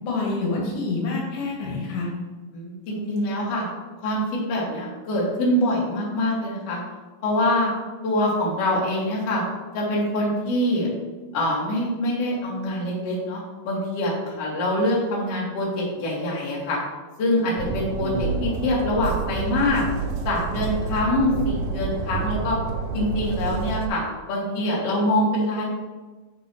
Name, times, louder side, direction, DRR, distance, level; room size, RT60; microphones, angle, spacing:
voice 1, 0.0-2.1 18.0-18.3, left 3 dB, 75° left, -3 dB, 3.2 m, -27 dB
voice 2, 2.5-3.7 4.0-6.8 7.2-7.7 8.0-9.4 9.7-10.9 11.3-13.4 13.6-16.8 17.2-19.8 20.2-22.6 22.9-24.0 24.3-25.6, left 1 dB, 45° left, -5 dB, 2.6 m, -24 dB
Train, 17.6-23.9, right 4 dB, 80° right, 2.2 m, -29 dB
12.0 x 5.4 x 3.1 m, 1.3 s
omnidirectional pair, 4.4 m